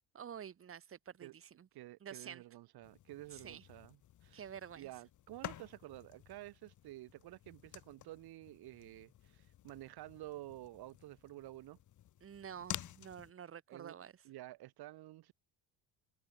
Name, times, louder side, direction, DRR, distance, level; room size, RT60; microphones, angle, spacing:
voice 1, 0.1-1.7 2.0-2.4 3.3-3.6 4.3-4.9 12.2-14.1, right 8 dB, 30° right, 4.5 m, -49 dB
voice 2, 1.7-4.4 4.7-11.8 13.7-14.0 14.2-15.3, right 16 dB, 60° right, 3.3 m, -51 dB
sound 1, 2.8-13.3, left 12 dB, 45° left, 2.3 m, -51 dB
cardioid pair, 170°, 41 cm